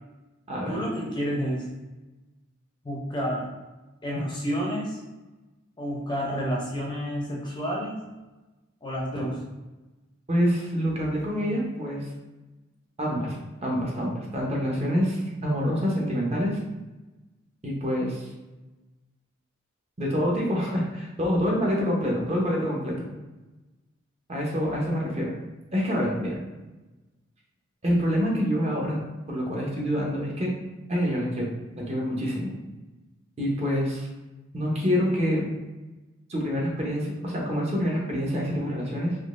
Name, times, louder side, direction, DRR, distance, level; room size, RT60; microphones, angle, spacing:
voice 1, 0.7-1.7 2.8-3.5 4.0-5.0 5.8-8.0 8.8-9.4, equal, 20° left, -3 dB, 0.6 m, -29 dB
voice 2, 10.3-12.1 13.0-13.3 13.6-16.6 17.6-18.3 20.0-23.1 24.3-25.3 25.7-26.4 27.8-29.0 29.3-30.5 30.9-32.5 33.4-34.1 34.5-35.5 36.3-39.2, equal, 30° right, -2 dB, 0.8 m, -26 dB
3.7 x 2.9 x 2.5 m, 1.1 s
head